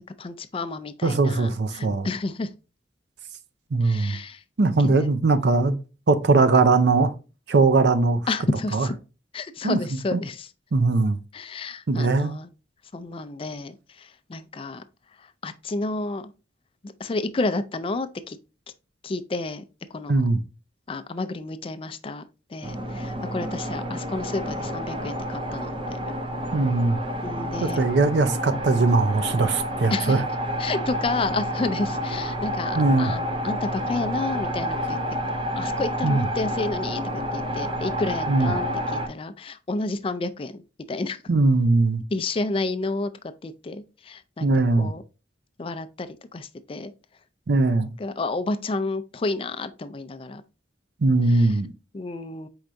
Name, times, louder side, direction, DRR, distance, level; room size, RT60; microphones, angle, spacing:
voice 1, 0.2-2.5 3.8-4.4 5.0-5.1 8.3-9.0 9.3-10.5 11.3-12.5 12.9-14.8 15.4-16.3 17.0-18.4 19.0-19.6 19.9-20.2 20.9-22.2 22.5-26.2 27.2-27.8 29.9-30.2 30.6-35.0 35.6-40.6 40.9-41.2 42.1-43.1 43.4-44.5 44.8-45.0 45.6-46.1 46.3-46.9 48.0-50.4 51.3-51.5 51.9-52.5, left 3 dB, 30° left, 0.4 m, -30 dB
voice 2, 1.0-2.1 3.7-4.2 4.6-5.8 6.1-7.1 7.5-8.2 8.7-8.9 9.6-9.8 10.1-10.2 10.7-11.2 11.9-12.4 20.1-20.4 26.5-27.0 27.6-30.2 32.7-33.1 36.0-36.3 38.3-38.6 41.3-42.0 44.4-44.9 47.5-47.9 51.0-51.7, right 3 dB, 70° right, 0.5 m, -20 dB
sound 1, 22.6-39.1, equal, 30° right, 0.7 m, -29 dB
4.7 x 4.3 x 2.5 m
head